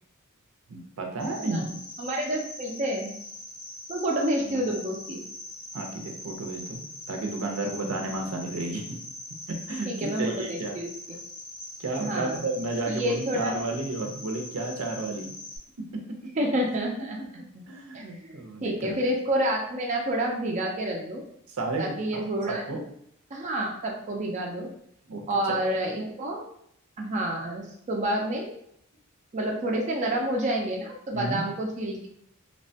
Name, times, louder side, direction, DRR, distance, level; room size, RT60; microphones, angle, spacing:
voice 1, 0.7-1.8 4.5-4.6 5.7-8.8 9.5-10.8 11.8-15.3 15.9-16.2 17.2-19.1 21.5-21.8 22.1-22.8 25.1-25.6 31.1-31.4, right 2 dB, 80° right, 2 dB, 0.5 m, -32 dB
Cricket, 1.2-15.6, left 1 dB, 80° left, 1.1 m, -42 dB
voice 2, 2.0-3.1 3.9-5.2 7.6-7.7 9.8-10.9 12.0-12.5 12.9-13.5 16.4-17.6 17.9-21.2 21.8-22.6 23.3-24.7 25.3-26.4 27.0-28.5 29.3-32.1, right 1 dB, 35° right, -1 dB, 0.4 m, -29 dB
2.9 x 2.1 x 2.7 m, 0.71 s
head